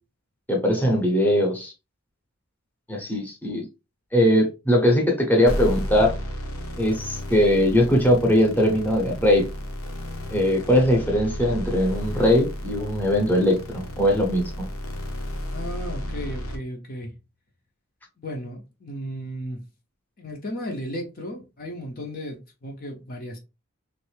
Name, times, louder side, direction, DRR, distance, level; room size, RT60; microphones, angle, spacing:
voice 1, 0.5-1.7 2.9-3.6 4.1-6.2 6.8-9.5 10.3-14.7, left 1 dB, 10° left, 0.8 m, -20 dB
sound 1, 5.5-16.6, equal, 70° left, 0.9 m, -33 dB
voice 2, 15.5-17.1 18.2-19.6 20.2-23.4, equal, 40° left, 0.7 m, -35 dB
3.1 x 2.5 x 3.2 m
head